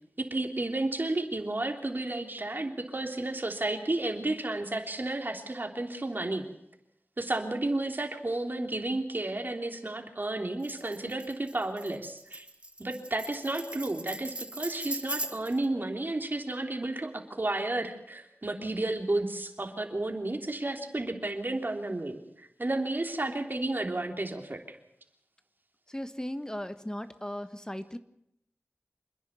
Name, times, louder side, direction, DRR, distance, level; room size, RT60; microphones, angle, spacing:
voice 1, 0.2-6.5 7.2-12.5 12.8-24.8, right 2 dB, 45° right, 4 dB, 3.3 m, -32 dB
Tambourine, 10.6-15.7, right 1 dB, 25° right, 1.4 m, -39 dB
voice 2, 25.9-28.0, left 1 dB, 15° left, 11 dB, 1.3 m, -37 dB
28.0 x 10.5 x 9.3 m, 0.79 s
wide cardioid pair, 45°, 5 cm